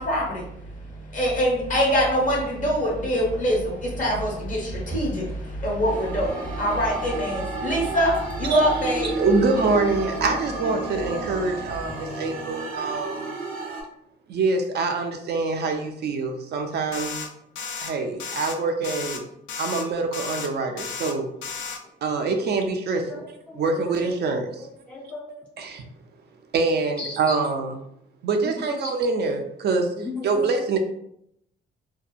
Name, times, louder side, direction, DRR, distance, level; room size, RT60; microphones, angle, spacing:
voice 1, 0.0-9.1, equal, 40° left, -2 dB, 1.1 m, -24 dB
sound 1, 5.8-13.8, right 3 dB, 80° right, 0.7 m, -32 dB
voice 2, 9.0-13.3 14.3-17.2 17.8-19.2 19.6-21.3 22.0-23.2 23.5-24.7 25.6-25.8 26.5-27.8 28.2-29.9 30.2-30.8, right 3 dB, 55° right, 5 dB, 0.4 m, -25 dB
sound 2, 16.9-17.3 17.6-17.9 18.2-18.6 18.8-19.2 19.5-19.8 20.1-20.5 20.8-21.1 21.4-21.8, left 5 dB, 70° left, 0.4 m, -33 dB
voice 3, 23.1-24.0 24.6-25.3 25.6-25.7 27.0-27.3 28.4-28.7 30.0-30.5, left 3 dB, 5° left, -4 dB, 0.5 m, -37 dB
2.7 x 2.2 x 2.4 m, 0.75 s
cardioid pair, 90°, 20 cm